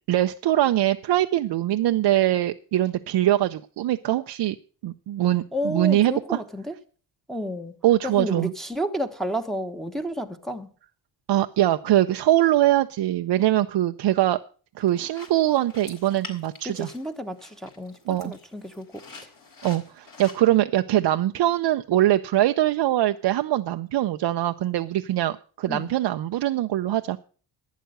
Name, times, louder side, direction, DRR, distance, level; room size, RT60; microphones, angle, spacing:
voice 1, 0.1-4.6 4.8-6.4 7.8-8.5 11.3-14.4 14.8-16.9 18.1-18.3 19.6-27.2, right 13 dB, 60° right, 0.6 m, -22 dB
voice 2, 5.5-6.7 7.3-7.7 8.0-10.7 16.6-19.0 25.7-25.9, equal, ahead, 1.1 m, -31 dB
sound 1, 14.8-20.6, left 4 dB, 45° left, 3.9 m, -47 dB
11.5 x 9.2 x 6.4 m
cardioid pair, 100°, 46 cm